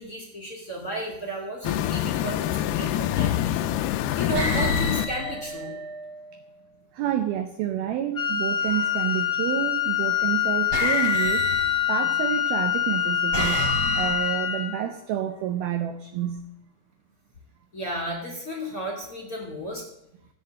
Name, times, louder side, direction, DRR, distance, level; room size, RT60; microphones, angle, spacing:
voice 1, 0.0-3.3 4.2-5.7 17.7-19.9, equal, 25° left, -1 dB, 2.5 m, -33 dB
sound 1, 1.6-5.1, left 12 dB, 85° left, 2.3 m, -26 dB
sound 2, 3.4-3.7 4.3-6.4 8.6-9.2 10.2-10.3 10.7-12.3 12.9-14.6, left 1 dB, 30° right, 3.3 m, -30 dB
voice 2, 6.9-11.5 11.9-13.7 13.9-16.4, right 10 dB, 80° right, 7 dB, 2.2 m, -29 dB
Wind instrument woodwind instrument, 8.1-14.8, left 10 dB, 5° right, 3.2 m, -25 dB
15.0 x 8.4 x 7.6 m, 0.80 s
omnidirectional pair, 5.4 m